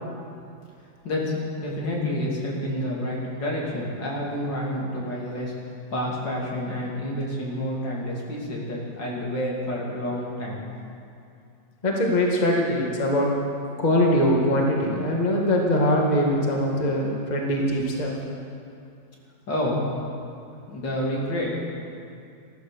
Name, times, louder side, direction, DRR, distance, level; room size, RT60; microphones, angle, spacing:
voice 1, 1.6-10.6 19.5-20.0 20.7-21.5, left 1 dB, 65° left, -4 dB, 3.5 m, -29 dB
voice 2, 11.8-13.3 13.8-18.1, left 1 dB, 25° left, -1 dB, 1.8 m, -22 dB
14.0 x 13.5 x 6.8 m, 2.5 s
omnidirectional pair, 2.1 m